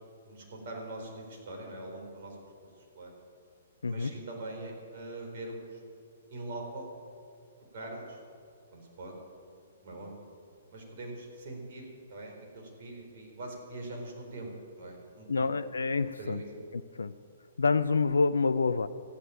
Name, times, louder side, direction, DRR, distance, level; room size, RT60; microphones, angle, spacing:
voice 1, 0.2-2.4 2.9-3.1 3.8-5.8 6.3-6.9 7.7-8.2 8.7-9.1 9.8-10.2 10.7-11.8 12.1-15.5 16.2-16.5, right 2 dB, 50° right, 0 dB, 4.4 m, -42 dB
voice 2, 15.3-16.4 16.7-17.1 17.6-18.9, left 4 dB, 75° left, 12 dB, 0.4 m, -27 dB
14.5 x 9.9 x 8.7 m, 2.3 s
figure-of-eight pair, 120°, 0 cm